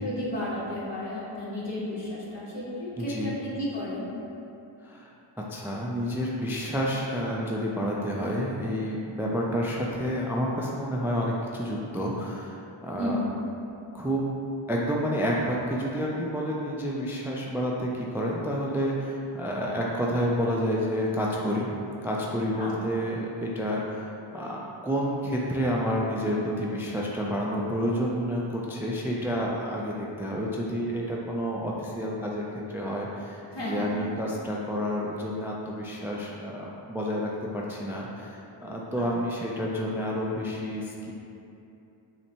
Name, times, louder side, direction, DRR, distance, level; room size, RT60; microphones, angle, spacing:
voice 1, 0.0-4.1 13.0-13.3 22.6-22.7 33.5-34.0 38.9-39.1, left 1 dB, 55° left, -7 dB, 1.3 m, -33 dB
voice 2, 3.0-3.3 4.8-5.1 5.4-13.2 13.9-14.2 14.7-21.7 22.0-41.1, equal, 5° right, -3 dB, 0.3 m, -29 dB
5.4 x 2.2 x 2.9 m, 2.8 s
cardioid pair, 45°, 50 cm